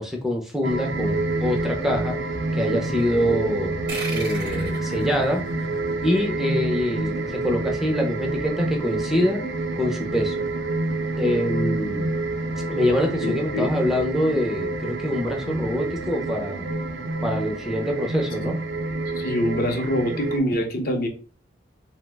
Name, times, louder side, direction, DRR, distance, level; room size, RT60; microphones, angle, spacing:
voice 1, 0.0-2.2 2.5-3.8 4.1-5.4 6.0-9.4 9.8-10.4 11.2-12.1 12.7-16.7 17.2-18.6, left 1 dB, ahead, 1 dB, 0.4 m, -25 dB
sound 1, 0.6-20.4, right 2 dB, 90° right, 0.5 m, -28 dB
sound 2, 3.9-6.9, right 2 dB, 60° right, 0.7 m, -36 dB
voice 2, 13.2-13.7 19.2-21.1, left 1 dB, 55° left, 4 dB, 0.6 m, -24 dB
2.7 x 2.0 x 3.2 m, 0.36 s
head